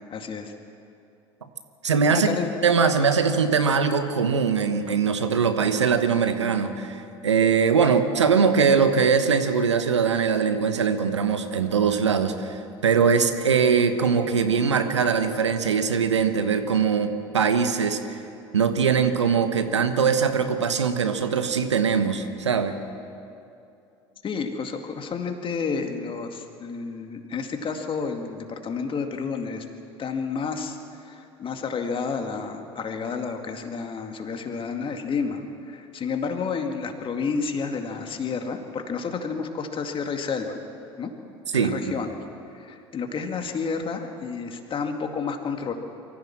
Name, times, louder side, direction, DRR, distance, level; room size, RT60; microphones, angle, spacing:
voice 1, 0.1-0.5 2.1-2.5 24.2-29.7 30.0-40.6 41.0-41.1 41.5-42.2 42.5-45.7, left 5 dB, 35° left, 5 dB, 2.2 m, -30 dB
voice 2, 1.8-2.3 2.6-18.0 18.5-22.7 41.5-41.7, right 6 dB, 90° right, 9 dB, 1.1 m, -22 dB
23.5 x 15.0 x 7.4 m, 2.6 s
hypercardioid pair, 70°, 14 cm